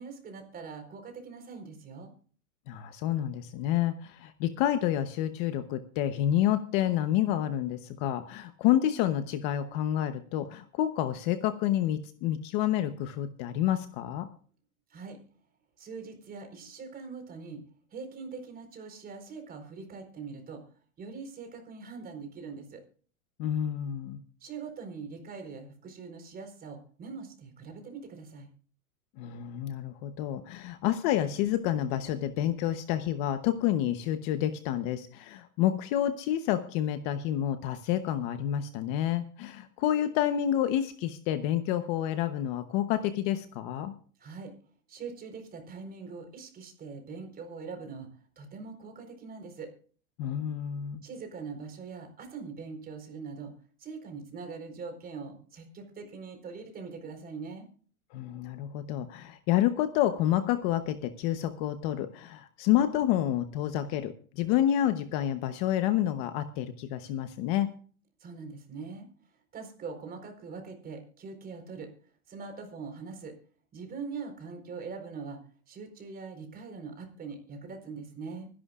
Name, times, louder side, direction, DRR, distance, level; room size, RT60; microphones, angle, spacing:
voice 1, 0.0-2.1 14.9-15.2 15.8-17.6 17.9-22.8 24.4-28.5 44.2-44.5 44.9-48.1 48.4-49.7 51.0-53.5 53.8-57.7 68.2-69.1 69.5-71.9 72.3-73.4 73.7-75.4 75.7-78.5, right 5 dB, 20° right, 5 dB, 4.3 m, -42 dB
voice 2, 2.7-14.3 23.4-24.2 29.2-43.9 50.2-51.0 58.1-67.7, left 11 dB, 40° left, 10 dB, 1.0 m, -29 dB
24.5 x 11.5 x 2.5 m, 0.42 s
supercardioid pair, 150°, 43 cm